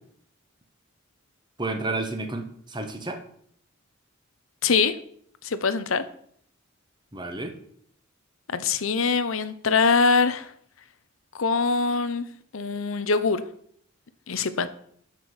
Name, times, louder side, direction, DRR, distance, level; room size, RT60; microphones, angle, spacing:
voice 1, 1.6-3.2 7.1-7.5, right 2 dB, 20° right, 6 dB, 1.3 m, -31 dB
voice 2, 4.6-5.0 5.4-6.0 8.5-10.5 11.3-12.3 12.5-13.4 14.3-14.7, left 4 dB, 70° left, 12 dB, 0.8 m, -23 dB
8.2 x 6.1 x 7.8 m, 0.64 s
head